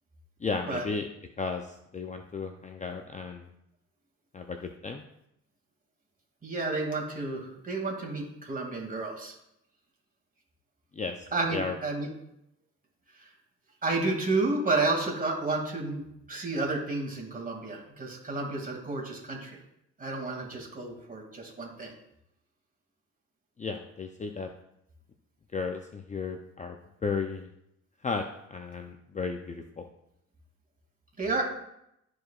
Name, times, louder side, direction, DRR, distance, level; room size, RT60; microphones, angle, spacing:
voice 1, 0.4-1.1 1.4-3.5 4.3-5.0 10.9-11.3 11.5-11.8 23.6-24.5 25.5-26.8 27.0-27.5 28.0-29.9, left 4 dB, 25° left, 5 dB, 0.5 m, -34 dB
voice 2, 6.4-9.3 11.3-12.1 13.1-13.3 13.8-19.6 20.0-21.9 31.2-31.4, right 3 dB, 30° right, -1 dB, 2.4 m, -31 dB
13.0 x 4.7 x 2.4 m, 0.81 s
cardioid pair, 90°, 30 cm